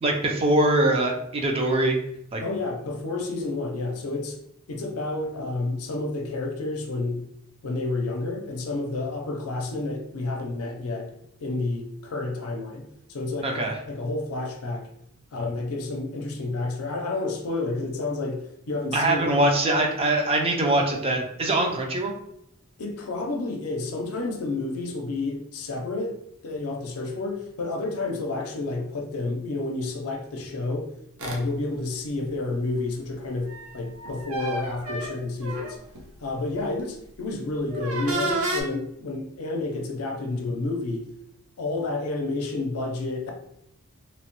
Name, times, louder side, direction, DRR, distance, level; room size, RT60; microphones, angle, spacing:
voice 1, 0.0-2.0 2.3-2.4 13.4-13.8 18.9-22.1, right 1 dB, 25° right, 1 dB, 0.4 m, -23 dB
voice 2, 2.4-4.4 4.7-7.2 7.6-14.9 15.3-19.3 22.8-26.2 26.4-30.9 31.2-35.8 36.2-41.1 41.6-43.3, left 2 dB, 85° left, 2 dB, 0.5 m, -30 dB
sound 1, 31.2-31.4 33.4-36.0 36.6-36.8 37.7-38.6, right 2 dB, 75° right, 0.6 m, -31 dB
3.0 x 2.1 x 2.9 m, 0.75 s
head